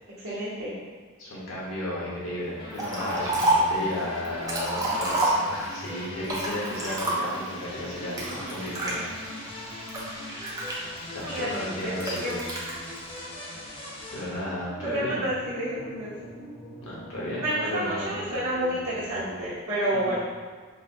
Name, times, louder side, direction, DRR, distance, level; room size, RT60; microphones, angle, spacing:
voice 1, 0.2-0.8 11.2-12.4 14.8-16.3 17.4-20.2, right 1 dB, 85° right, -13 dB, 1.2 m, -30 dB
voice 2, 1.2-9.1 11.1-12.4 13.4-13.6 14.1-15.3 16.8-18.2 19.9-20.2, left 1 dB, 75° left, -7 dB, 1.1 m, -34 dB
sound 1, 2.6-19.5, left 1 dB, 25° left, 0.6 m, -41 dB
Liquid, 2.8-3.8 4.2-5.8 6.2-7.5 8.2-8.9 9.5-11.2 12.0-12.7, right 2 dB, 15° right, 0.6 m, -28 dB
5.0 x 2.2 x 2.8 m, 1.5 s
head